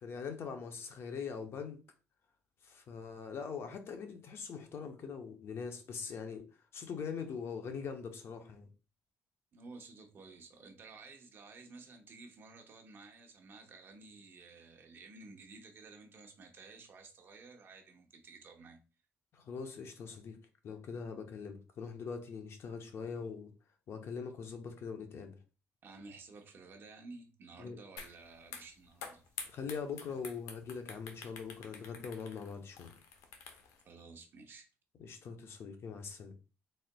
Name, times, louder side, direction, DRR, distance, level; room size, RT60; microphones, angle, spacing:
voice 1, 0.0-1.8 2.6-6.5 6.7-8.7 19.3-20.4 20.6-23.5 23.9-25.4 27.6-27.8 29.5-32.9 35.0-36.3, left 6 dB, 50° left, 0.7 m, -42 dB
voice 2, 9.5-18.8 25.8-29.2 33.8-34.7, right 3 dB, 45° right, 1.0 m, -53 dB
sound 1, 28.0-28.1 28.4-33.8, left 6 dB, 85° left, 0.8 m, -48 dB
4.2 x 3.8 x 2.2 m
cardioid pair, 120°, 5 cm